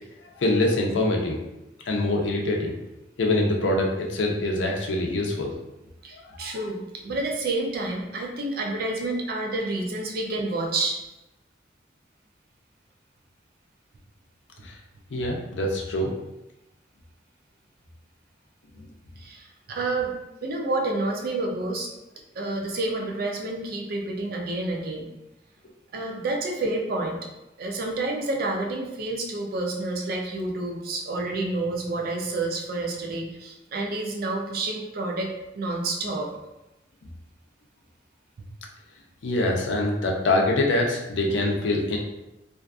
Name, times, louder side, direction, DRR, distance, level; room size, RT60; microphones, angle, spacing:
voice 1, 0.4-1.4 1.9-2.7 3.2-5.5 6.4-6.6 14.6-14.7 15.1-16.1 39.2-42.0, left 2 dB, 80° left, 1 dB, 0.5 m, -24 dB
voice 2, 6.0-11.0 19.2-20.1 20.4-21.9 22.4-25.1 25.9-27.2 27.6-36.3, right 2 dB, 55° right, 1 dB, 0.4 m, -29 dB
2.5 x 2.3 x 2.3 m, 0.96 s
head